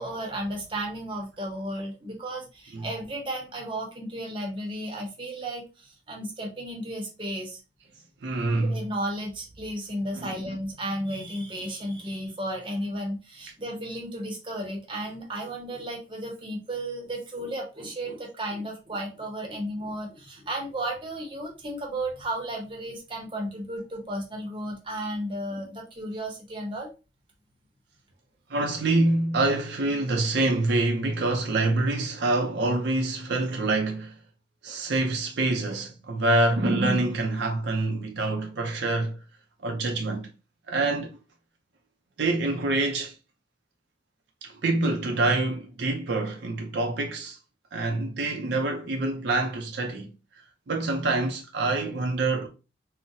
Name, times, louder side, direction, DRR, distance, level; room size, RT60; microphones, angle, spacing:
voice 1, 0.0-7.6 8.6-26.9, right 1 dB, 25° right, 0.7 m, -34 dB
voice 2, 8.2-8.8 10.1-10.6 25.5-25.6 28.5-34.1 34.6-39.2 39.6-40.3 40.7-41.2 42.2-43.1 44.4-47.4 47.7-50.1 50.7-52.5, right 2 dB, 65° right, 0.5 m, -26 dB
3.8 x 2.0 x 2.6 m
head